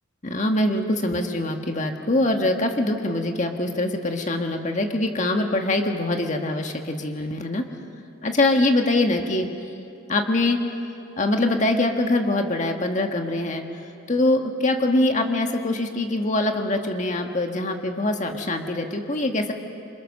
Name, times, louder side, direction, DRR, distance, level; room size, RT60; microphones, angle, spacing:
voice 1, 0.2-7.6 8.2-9.5 10.1-10.6 11.2-13.6 14.1-19.5, left 2 dB, 35° left, 3 dB, 1.7 m, -23 dB
28.0 x 27.5 x 6.6 m, 2.7 s
head